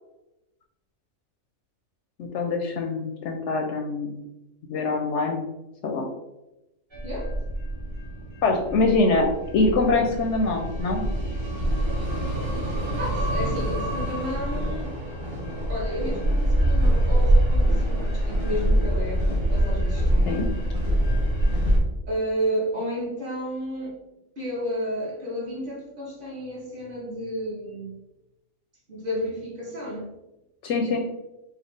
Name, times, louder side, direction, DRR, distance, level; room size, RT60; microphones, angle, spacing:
voice 1, 2.2-4.2 4.7-5.4 5.8-6.0 8.4-9.3 9.5-11.0 20.3-20.5 30.6-31.0, left 3 dB, 65° left, 3 dB, 0.8 m, -24 dB
sound 1, 6.9-21.8, right 1 dB, 25° right, 0.8 m, -24 dB
voice 2, 13.0-14.9 15.7-20.5 22.1-23.9 24.4-27.9 28.9-30.1, equal, 40° right, -5 dB, 1.4 m, -32 dB
4.8 x 2.6 x 3.2 m, 0.95 s
omnidirectional pair, 1.4 m